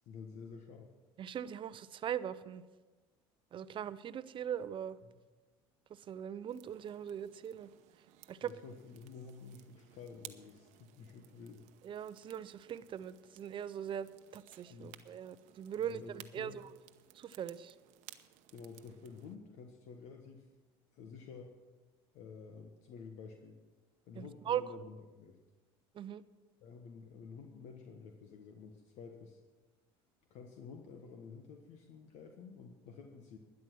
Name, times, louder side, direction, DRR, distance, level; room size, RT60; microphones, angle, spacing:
voice 1, 0.0-0.9 5.0-5.2 8.4-11.6 14.7-15.0 15.8-16.6 18.5-20.5 20.9-21.5 22.1-23.6 24.0-25.4 26.6-29.4 30.3-33.4, left 5 dB, 65° left, 4 dB, 1.3 m, -51 dB
voice 2, 1.2-2.6 3.5-5.0 5.9-7.7 8.3-8.5 11.8-16.5 17.1-17.7 24.1-24.6 25.9-26.2, right 9 dB, 40° right, 15 dB, 0.6 m, -40 dB
sound 1, 6.5-19.4, right 14 dB, 70° right, 0.9 m, -59 dB
12.5 x 9.8 x 6.2 m, 1.3 s
supercardioid pair, 85°, 13 cm